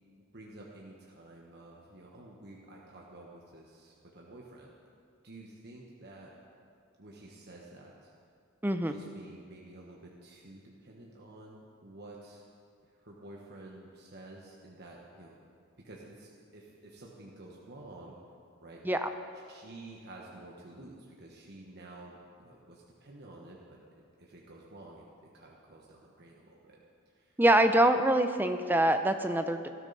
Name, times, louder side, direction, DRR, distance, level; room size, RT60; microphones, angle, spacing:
voice 1, 0.3-4.7 5.2-6.3 7.0-8.1 8.8-12.4 12.9-15.4 15.8-18.2 18.6-18.8 19.5-23.8 24.2-25.0 25.3-27.4, right 2 dB, 45° right, -3 dB, 1.3 m, -51 dB
voice 2, 8.6-9.0 18.8-19.1 27.4-29.7, right 1 dB, 10° right, 7 dB, 0.6 m, -25 dB
18.5 x 12.5 x 4.1 m, 2.3 s
head